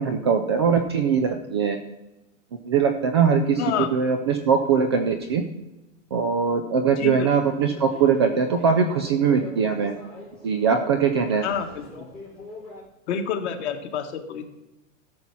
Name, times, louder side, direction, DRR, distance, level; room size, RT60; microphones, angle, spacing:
voice 1, 0.0-1.8 2.7-3.6 3.9-5.4 6.1-9.9 10.4-11.4, right 6 dB, 20° right, 6 dB, 0.3 m, -21 dB
voice 2, 3.6-3.9 7.0-7.3 11.4-12.0 13.1-14.4, left 8 dB, 55° left, 5 dB, 1.6 m, -28 dB
sound 1, 7.3-12.8, left 1 dB, ahead, 4.0 m, -43 dB
13.5 x 5.5 x 6.0 m, 0.99 s
hypercardioid pair, 150°, 41 cm